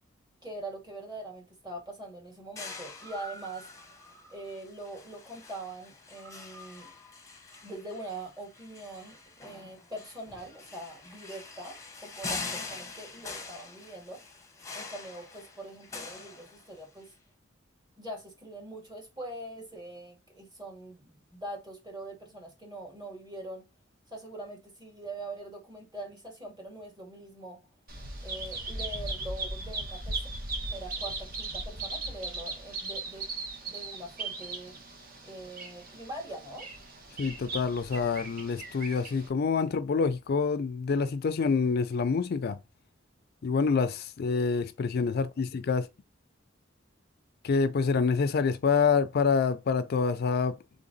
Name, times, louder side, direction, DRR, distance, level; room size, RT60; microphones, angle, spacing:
voice 1, 0.4-3.7 4.3-6.9 7.6-14.2 14.7-17.1 18.0-23.6 24.1-27.6 28.2-30.3 30.7-33.3 33.7-34.7 35.2-36.7, right 1 dB, 20° right, 2.0 m, -43 dB
sound 1, 2.6-17.0, left 3 dB, 15° left, 0.8 m, -44 dB
Bird vocalization bird call bird song, 27.9-39.3, right 2 dB, 50° right, 1.2 m, -38 dB
voice 2, 37.2-42.6 43.4-45.9 47.4-50.6, left 5 dB, 55° left, 0.4 m, -27 dB
3.7 x 3.7 x 3.9 m
head